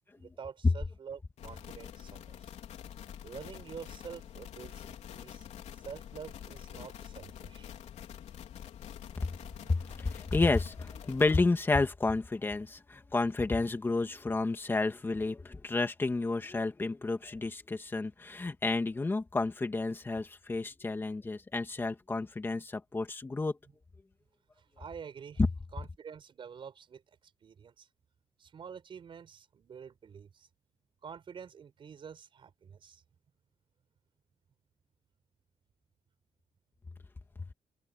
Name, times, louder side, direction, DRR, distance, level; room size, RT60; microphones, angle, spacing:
voice 1, 0.2-2.5 3.2-5.5 5.8-7.7 9.5-9.8 22.5-22.7 24.8-25.4 25.7-27.0 27.4-27.9 28.4-30.5 31.0-33.0, right 7 dB, 45° right, 5.2 m, -47 dB
sound 1, 1.4-11.4, left 9 dB, 75° left, 3.9 m, -47 dB
voice 2, 9.7-23.6 25.4-25.5, left 3 dB, 20° left, 2.3 m, -31 dB
open air
cardioid pair, 150°, 12 cm